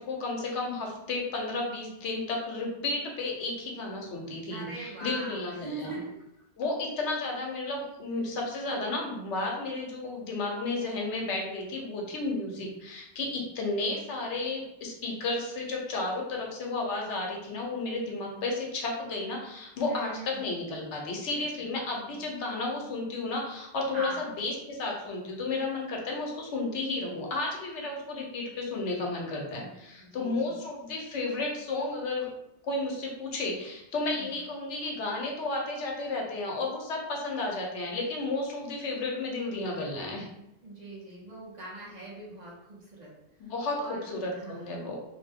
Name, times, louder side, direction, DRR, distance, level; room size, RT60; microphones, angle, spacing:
voice 1, 0.0-5.9 6.6-32.3 32.6-40.3 43.4-45.0, left 2 dB, 85° left, 0 dB, 1.0 m, -33 dB
voice 2, 4.5-6.2 8.2-8.4 19.9-20.5 21.3-21.4 23.9-24.2 30.0-30.6 34.1-34.4 40.6-43.1 43.8-44.9, right 2 dB, 45° right, -6 dB, 0.8 m, -41 dB
2.6 x 2.1 x 3.4 m, 0.87 s
omnidirectional pair, 1.2 m